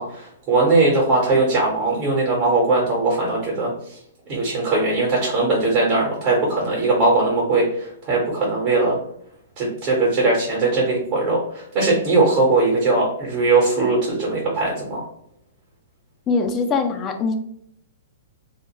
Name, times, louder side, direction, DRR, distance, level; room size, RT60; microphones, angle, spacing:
voice 1, 0.0-4.0 4.3-9.0 9.6-15.0, right 3 dB, 40° right, -3 dB, 1.0 m, -20 dB
voice 2, 16.3-17.3, left 4 dB, 25° left, 6 dB, 0.4 m, -22 dB
2.5 x 2.1 x 2.9 m, 0.71 s
hypercardioid pair, 115°, 0 cm